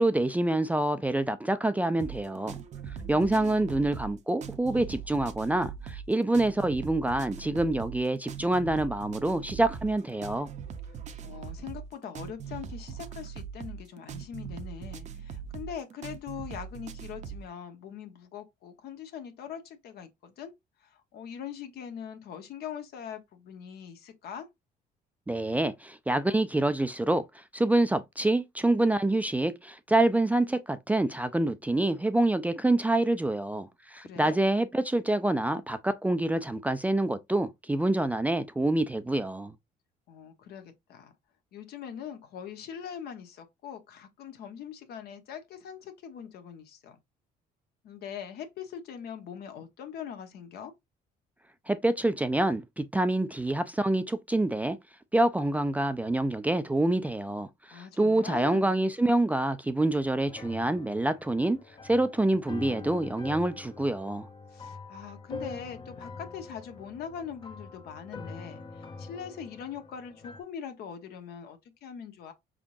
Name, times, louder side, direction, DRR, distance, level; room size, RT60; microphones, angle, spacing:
voice 1, 0.0-2.6 3.1-10.5 25.3-39.5 51.7-54.8 55.1-61.6 61.8-64.3, right 2 dB, 10° right, 0.4 m, -26 dB
sound 1, 2.0-17.5, right 7 dB, 45° right, 0.7 m, -41 dB
voice 2, 2.9-3.9 10.9-20.5 20.8-24.5 34.0-34.4 40.1-41.1 41.5-47.0 47.8-50.7 57.7-58.7 64.5-72.3, left 8 dB, 70° left, 1.0 m, -42 dB
sound 2, 60.3-70.4, left 3 dB, 30° left, 0.7 m, -44 dB
4.8 x 3.7 x 2.6 m
cardioid pair, 110°, 17 cm